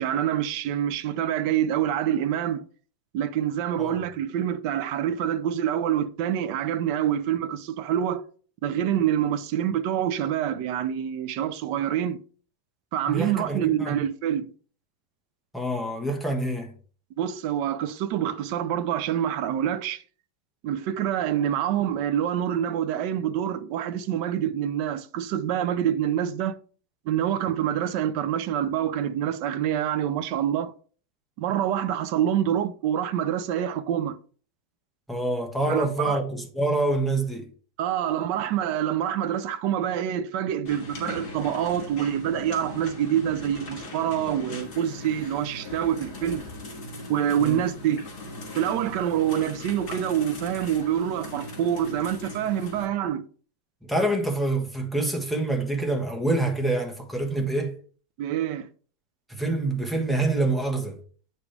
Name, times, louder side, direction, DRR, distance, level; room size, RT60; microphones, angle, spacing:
voice 1, 0.0-2.7 3.1-8.2 8.6-12.2 12.9-14.5 17.2-20.0 20.6-26.5 27.1-30.7 31.4-34.2 35.7-36.2 37.8-46.4 47.1-48.0 48.6-53.2 58.2-58.7, right 10 dB, 80° right, 1.2 m, -26 dB
voice 2, 13.1-14.0 15.5-16.7 35.1-37.5 47.4-47.6 53.8-57.7 59.3-61.0, right 2 dB, ahead, 0.9 m, -26 dB
sound 1, 40.7-52.9, left 2 dB, 65° left, 2.6 m, -39 dB
8.3 x 6.1 x 3.3 m
omnidirectional pair, 1.9 m